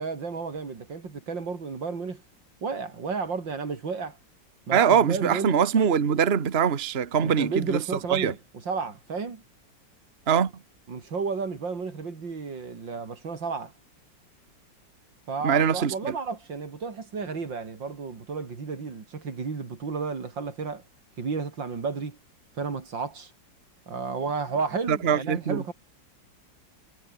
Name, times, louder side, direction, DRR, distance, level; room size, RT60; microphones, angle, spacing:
voice 1, 0.0-2.2 2.6-4.2 4.7-5.6 7.2-8.4 8.7-9.4 10.9-13.7 15.3-20.8 21.2-22.2 22.6-23.3 23.9-25.7, right 4 dB, 85° right, 3.8 m, -32 dB
voice 2, 4.7-7.8 8.1-8.3 10.3-10.5 15.4-16.1 24.9-25.7, right 7 dB, 35° right, 1.4 m, -23 dB
omnidirectional pair, 2.0 m